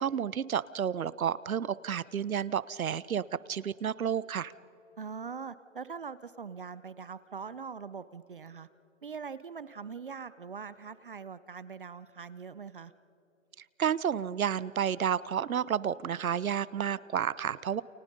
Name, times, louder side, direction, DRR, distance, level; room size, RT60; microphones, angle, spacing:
voice 1, 0.0-4.5 13.6-17.8, right 8 dB, 85° right, 19 dB, 1.0 m, -31 dB
voice 2, 5.0-8.7 9.0-12.9, right 6 dB, 40° right, 15 dB, 0.6 m, -42 dB
29.5 x 29.5 x 5.4 m, 2.8 s
hypercardioid pair, 170°, 41 cm